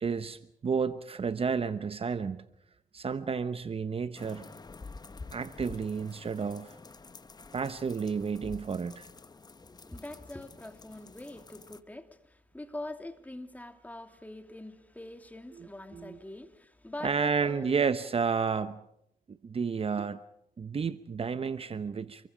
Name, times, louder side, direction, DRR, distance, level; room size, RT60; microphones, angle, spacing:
voice 1, 0.0-2.4 2.9-4.5 5.3-6.8 7.5-9.1 15.6-16.2 17.0-18.8 19.3-20.2 20.6-22.3, right 5 dB, 40° right, 0.9 m, -31 dB
sound 1, 4.2-11.8, left 4 dB, 25° left, 1.1 m, -49 dB
voice 2, 9.6-17.8, left 1 dB, 10° left, 2.8 m, -44 dB
30.0 x 23.0 x 5.1 m
cardioid pair, 75°, 15 cm